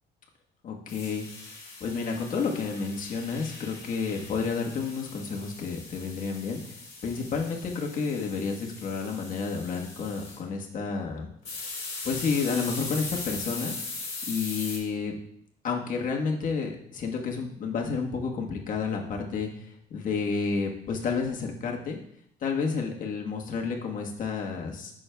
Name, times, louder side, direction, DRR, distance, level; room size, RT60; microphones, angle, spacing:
voice 1, 0.6-1.3 1.8-6.7 7.0-11.3 12.0-13.7 14.3-15.2 15.6-22.0 22.4-24.9, left 5 dB, 50° left, 1 dB, 1.4 m, -30 dB
sound 1, 0.9-10.4 11.5-14.8, left 3 dB, 35° left, 2.7 m, -40 dB
9.4 x 6.2 x 2.3 m, 0.70 s
cardioid pair, 110°, 17 cm